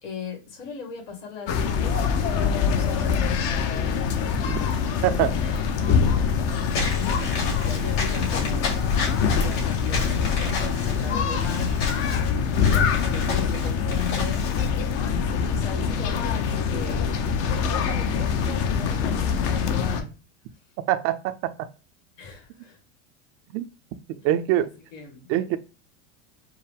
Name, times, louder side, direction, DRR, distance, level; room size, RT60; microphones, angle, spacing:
voice 1, 0.0-4.1 5.3-5.6 6.1-8.8 9.2-14.4 14.9-20.1 22.2-22.8 24.9-25.3, left 7 dB, 80° left, 1 dB, 2.0 m, -37 dB
sound 1, 1.5-20.0, left 6 dB, 40° left, 0.6 m, -24 dB
voice 2, 5.0-5.3 20.9-21.7 23.5-23.7 24.2-24.7 25.3-25.6, right 12 dB, 40° right, 10 dB, 0.4 m, -24 dB
Walk footsteps / Squeak, 6.7-14.7, left 5 dB, 55° left, 2.2 m, -30 dB
4.6 x 2.1 x 3.4 m, 0.32 s
supercardioid pair, 130°, 37 cm